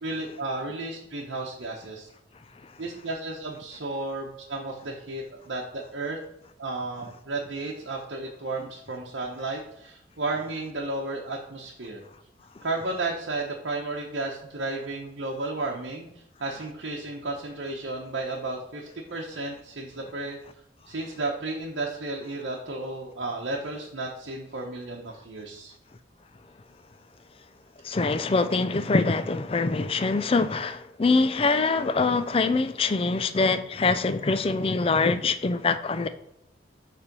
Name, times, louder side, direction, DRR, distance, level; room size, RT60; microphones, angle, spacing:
voice 1, 0.0-2.1 2.8-6.2 6.6-12.0 12.6-16.1 16.4-20.4 20.9-25.7, right 2 dB, 80° right, -3 dB, 1.0 m, -33 dB
voice 2, 27.8-36.1, left 3 dB, 30° left, 12 dB, 0.4 m, -24 dB
7.2 x 3.4 x 5.3 m, 0.81 s
head